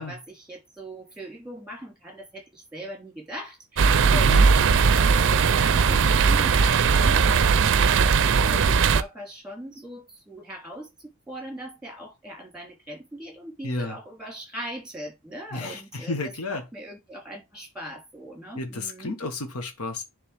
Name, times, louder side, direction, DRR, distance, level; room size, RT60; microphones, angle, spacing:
voice 1, 0.0-16.2 16.5-19.2, equal, 5° right, 3.0 m, -40 dB
sound 1, 3.8-9.0, right 5 dB, 55° right, 0.5 m, -19 dB
voice 2, 4.1-4.5 13.6-13.9 15.5-16.7 18.5-20.0, left 2 dB, 75° left, 1.3 m, -31 dB
10.0 x 3.5 x 3.4 m
head